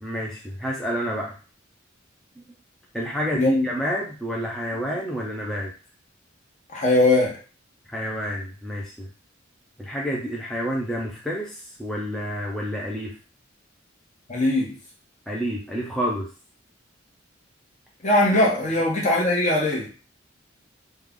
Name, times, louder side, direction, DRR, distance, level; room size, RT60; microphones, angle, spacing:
voice 1, 0.0-1.4 2.9-5.7 7.9-9.1 9.8-13.1 15.3-16.3 18.7-18.8, equal, ahead, -4 dB, 0.5 m, -29 dB
voice 2, 3.3-3.7 6.7-7.4 14.3-14.7 18.0-19.9, left 1 dB, 40° left, -2 dB, 1.0 m, -20 dB
3.2 x 2.3 x 3.6 m, 0.35 s
head